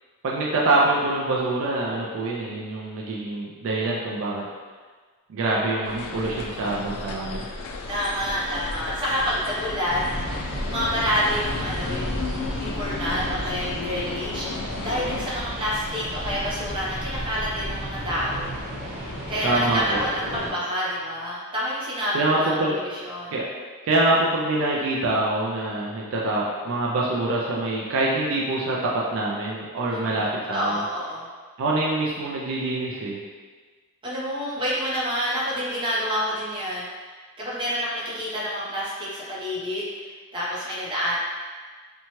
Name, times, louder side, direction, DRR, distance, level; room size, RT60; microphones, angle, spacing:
voice 1, 0.2-4.4 5.3-7.5 19.4-20.0 22.1-22.8 23.3-23.5 23.8-30.8 31.6-33.2, right 2 dB, 60° right, -4 dB, 0.3 m, -25 dB
sound 1, 5.8-15.3, left 4 dB, 75° left, 0.3 m, -34 dB
voice 2, 7.9-10.1 10.6-18.5 19.3-23.3 29.9-31.2 34.0-41.2, equal, 20° right, -8 dB, 0.7 m, -28 dB
sound 2, 9.9-20.5, equal, 50° left, 1.1 m, -33 dB
2.8 x 2.2 x 2.9 m, 1.5 s
head